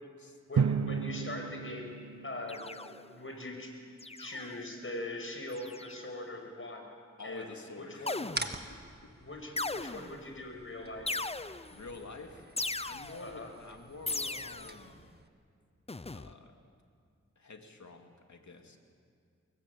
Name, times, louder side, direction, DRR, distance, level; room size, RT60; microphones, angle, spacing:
voice 1, 0.5-1.9 2.2-2.6 3.1-3.7 4.2-6.9 7.2-7.5 7.8-8.2 9.2-11.2 13.2-13.5, left 1 dB, 45° left, 2 dB, 6.3 m, -41 dB
Drum, 0.6-3.3, right 6 dB, 80° right, 0.8 m, -33 dB
sound 1, 2.5-3.2 4.0-4.6 5.5-6.1 8.1-8.8 9.6-10.3 11.1-11.8 12.6-13.4 14.1-14.9 15.9-16.3, left 3 dB, 20° left, 0.7 m, -38 dB
voice 2, 7.2-8.3 8.7-9.1 11.7-12.4 12.8-15.2 16.1-16.6 17.4-18.8, left 3 dB, 70° left, 3 dB, 2.9 m, -48 dB
sound 2, 8.3-15.3, right 2 dB, 35° right, 2.0 m, -46 dB
24.5 x 22.0 x 8.6 m, 2.3 s
cardioid pair, 50°, 30 cm